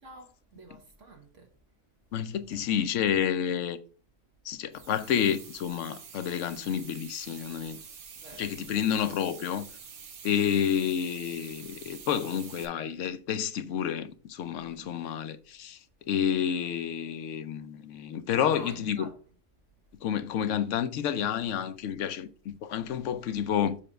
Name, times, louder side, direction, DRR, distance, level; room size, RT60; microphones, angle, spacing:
voice 1, 0.0-1.5 2.5-2.6 8.2-8.5 10.3-10.6 18.5-19.2, right 2 dB, 85° right, 1.7 m, -48 dB
voice 2, 2.1-3.8 4.5-7.8 8.4-9.7 10.2-15.8 16.1-19.1 20.0-22.3 22.6-23.8, left 8 dB, 85° left, 1.0 m, -29 dB
sound 1, 4.7-12.7, right 6 dB, 70° right, 1.2 m, -47 dB
7.0 x 3.3 x 5.1 m
omnidirectional pair, 1.2 m